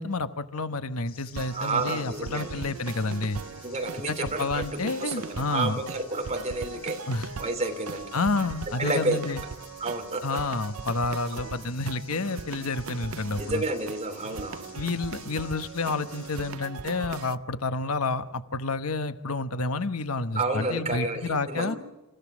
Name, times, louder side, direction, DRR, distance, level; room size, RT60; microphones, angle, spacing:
voice 1, 0.0-3.4 4.1-5.8 7.1-7.3 8.1-9.4 10.2-13.6 14.7-21.8, left 3 dB, 90° left, 10 dB, 1.2 m, -29 dB
sound 1, 1.1-16.5, left 6 dB, 45° left, 4.7 m, -52 dB
sound 2, 1.4-17.4, right 5 dB, 75° right, 0.7 m, -40 dB
voice 2, 1.5-2.7 3.6-7.1 7.4-8.5 8.8-9.3 9.8-10.4 11.3-11.5 13.4-14.7 20.3-21.8, right 2 dB, 30° right, 5 dB, 3.2 m, -30 dB
28.0 x 16.0 x 6.3 m, 1.1 s
head